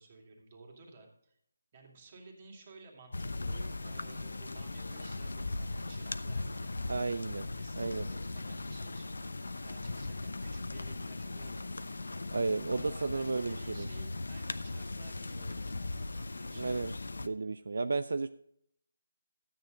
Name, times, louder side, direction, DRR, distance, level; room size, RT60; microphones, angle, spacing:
voice 1, 0.0-1.4 1.7-11.8 12.7-16.8, right 3 dB, 30° right, 2 dB, 2.5 m, -55 dB
sound 1, 3.1-17.3, left 2 dB, 85° left, 0.8 m, -39 dB
voice 2, 6.9-7.5 7.8-8.1 12.3-13.9 16.6-16.9 17.2-18.3, right 3 dB, 60° right, 11 dB, 0.4 m, -33 dB
13.0 x 8.9 x 3.8 m, 0.71 s
hypercardioid pair, 170°, 0 cm